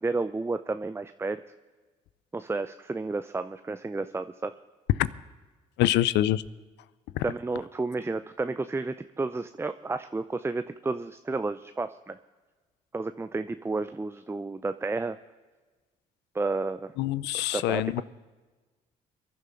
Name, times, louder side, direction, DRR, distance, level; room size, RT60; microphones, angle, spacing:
voice 1, 0.0-1.4 2.3-4.5 7.2-12.2 12.9-15.2 16.3-16.9 17.3-18.0, right 3 dB, 15° right, 11 dB, 0.6 m, -31 dB
voice 2, 5.8-6.4 7.2-7.3 17.0-18.0, left 14 dB, 75° left, 19 dB, 0.6 m, -25 dB
24.0 x 11.0 x 3.9 m, 1.3 s
hypercardioid pair, 50°, 18 cm